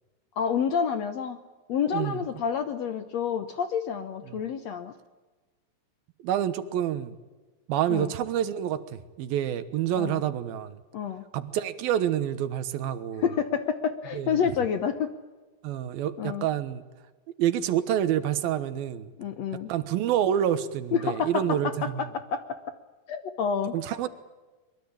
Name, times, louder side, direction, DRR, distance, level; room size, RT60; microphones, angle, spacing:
voice 1, 0.4-1.4 1.7-4.9 7.9-8.1 10.0-10.2 10.9-11.2 13.2-15.1 16.2-16.5 19.2-19.7 20.9-22.6 23.1-23.8, left 7 dB, 65° left, 9 dB, 1.8 m, -28 dB
voice 2, 6.2-7.2 7.7-10.8 11.3-13.3 14.1-14.5 15.6-16.8 17.4-19.1 19.7-22.1 23.7-24.1, right 10 dB, 85° right, 12 dB, 3.0 m, -28 dB
23.0 x 22.5 x 8.8 m, 1.2 s
omnidirectional pair, 4.1 m